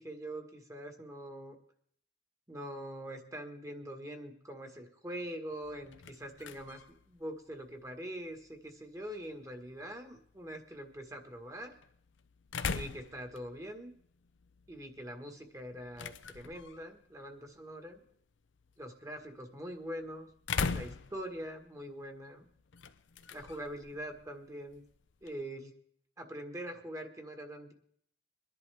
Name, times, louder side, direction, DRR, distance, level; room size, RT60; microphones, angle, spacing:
voice 1, 0.0-1.5 2.5-11.7 12.7-13.9 14.7-18.0 18.8-20.3 20.7-22.5 23.3-24.8 25.2-25.7 26.2-27.7, equal, 15° right, 4 dB, 1.6 m, -43 dB
sound 1, 5.6-25.5, left 5 dB, 80° left, 0.7 m, -44 dB
23.0 x 11.0 x 3.5 m, 0.65 s
head